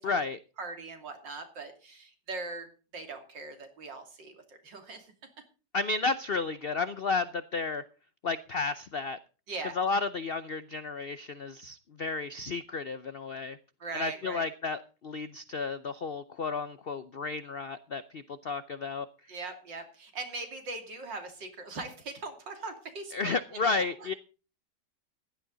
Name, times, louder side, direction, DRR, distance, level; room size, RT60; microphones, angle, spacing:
voice 1, 0.0-0.4 5.7-7.8 8.2-9.2 9.7-13.6 13.9-19.1 23.1-24.1, left 4 dB, 90° left, 13 dB, 0.5 m, -32 dB
voice 2, 0.6-2.7 2.9-5.1 9.5-9.7 13.8-14.5 19.3-24.2, right 3 dB, 80° right, 5 dB, 3.4 m, -40 dB
15.5 x 11.5 x 3.9 m, 0.35 s
omnidirectional pair, 1.9 m